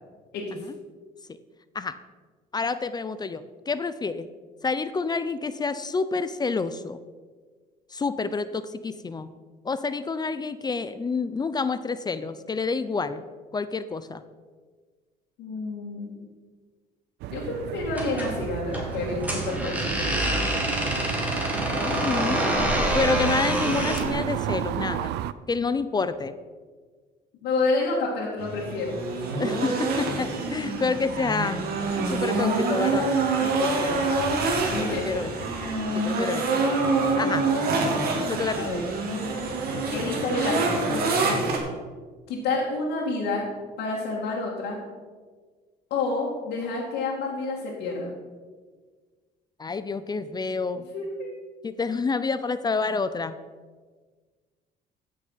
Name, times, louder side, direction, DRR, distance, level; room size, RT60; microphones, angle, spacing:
voice 1, 0.3-0.7 15.4-16.2 17.3-20.1 27.4-28.9 29.7-29.8 33.4-34.0 34.7-35.3 38.6-38.9 39.9-41.6 42.3-43.5 43.8-44.8 45.9-48.2 50.9-51.3, left 3 dB, 80° left, -5 dB, 2.5 m, -29 dB
voice 2, 2.5-4.3 4.6-7.0 7.9-9.3 9.6-13.2 13.5-14.2 21.8-25.1 25.5-26.3 29.4-31.6 32.1-33.1 34.6-35.3 35.9-36.6 37.2-37.5 38.3-38.7 41.3-41.8 49.6-50.9 51.6-53.4, left 4 dB, 25° left, 13 dB, 0.5 m, -28 dB
sound 1, 17.2-25.3, right 11 dB, 85° right, 0.5 m, -32 dB
sound 2, 17.9-24.1, equal, 10° right, 2.8 m, -27 dB
sound 3, 28.4-41.6, right 3 dB, 65° right, 2.7 m, -26 dB
15.0 x 6.6 x 5.7 m, 1.5 s
cardioid pair, 110°, 17 cm